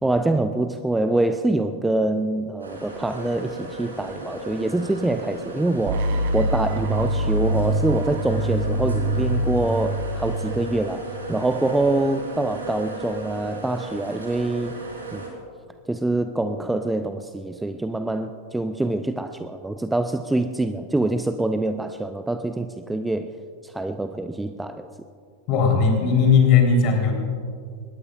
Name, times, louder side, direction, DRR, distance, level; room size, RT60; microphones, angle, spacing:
voice 1, 0.0-6.1 6.3-14.8 15.1-15.2 15.9-23.3 23.6-24.9, right 2 dB, 5° right, 9 dB, 0.5 m, -25 dB
sound 1, 2.6-15.3, right 2 dB, 75° right, 3.7 m, -36 dB
sound 2, 5.9-11.8, right 1 dB, 50° right, 1.1 m, -25 dB
voice 2, 25.5-27.1, left 5 dB, 40° left, 1 dB, 3.8 m, -17 dB
22.0 x 19.0 x 2.5 m, 2.2 s
figure-of-eight pair, 90°, 0 cm